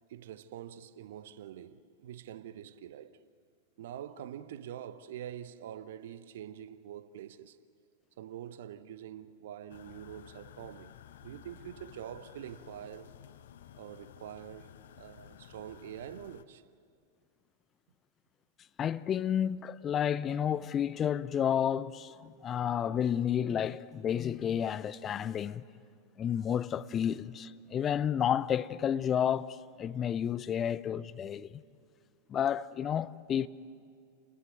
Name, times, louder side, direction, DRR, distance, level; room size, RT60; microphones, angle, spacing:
voice 1, 0.1-3.2 3.8-7.6 8.2-10.9 11.2-13.1 13.8-16.6, right 10 dB, 55° right, 0.9 m, -45 dB
sound 1, 9.7-16.4, left 10 dB, 60° left, 1.0 m, -53 dB
voice 2, 18.8-25.6 26.2-31.6 32.3-33.5, left 9 dB, 25° left, 0.6 m, -31 dB
29.0 x 21.0 x 9.2 m
figure-of-eight pair, 90°, 0 cm